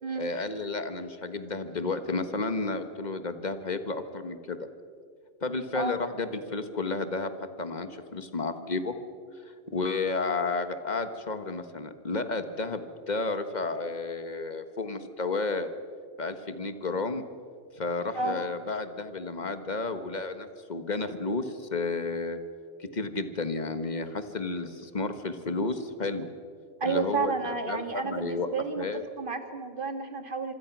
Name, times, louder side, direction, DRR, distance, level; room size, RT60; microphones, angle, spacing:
voice 1, 0.1-4.7 5.4-7.3 7.6-9.0 9.7-15.7 16.2-17.2 17.8-22.4 22.8-26.3 26.8-28.5 28.8-29.0, left 3 dB, 40° left, 9 dB, 1.5 m, -32 dB
voice 2, 26.8-28.9 29.2-30.5, right 4 dB, 45° right, 8 dB, 1.9 m, -31 dB
26.0 x 25.0 x 6.1 m, 2.2 s
omnidirectional pair, 1.2 m